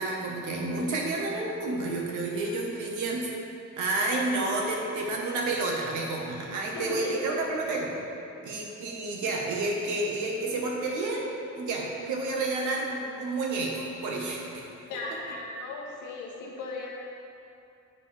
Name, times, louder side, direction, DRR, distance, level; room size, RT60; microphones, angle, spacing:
voice 1, 0.0-3.3 3.8-8.0 8.4-14.7, right 2 dB, 80° right, -1 dB, 1.2 m, -30 dB
voice 2, 6.7-7.5 14.9-16.9, left 3 dB, 85° left, -2 dB, 0.9 m, -36 dB
7.7 x 5.4 x 3.3 m, 2.7 s
cardioid pair, 90°, 30 cm